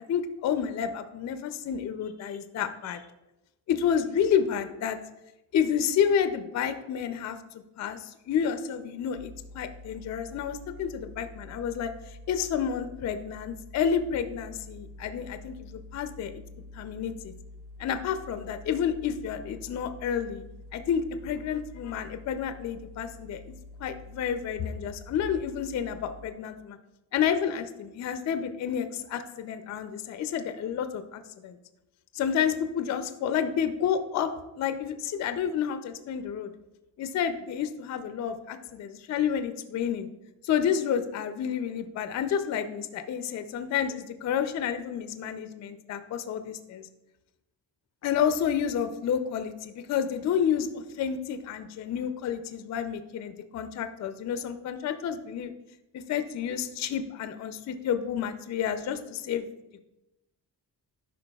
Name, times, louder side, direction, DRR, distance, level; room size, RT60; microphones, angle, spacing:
voice 1, 0.1-3.0 3.7-5.0 5.5-7.4 7.8-11.9 12.3-16.4 16.7-17.3 17.8-20.4 20.7-23.4 23.8-26.8 27.1-31.6 32.1-34.3 34.6-36.5 37.0-40.1 40.4-46.9 48.0-55.5 56.1-59.5, left 8 dB, 45° left, 9 dB, 0.4 m, -30 dB
sound 1, 9.1-26.3, left 2 dB, 70° right, 0.5 m, -47 dB
10.5 x 5.1 x 2.3 m, 0.94 s
wide cardioid pair, 165°, 42 cm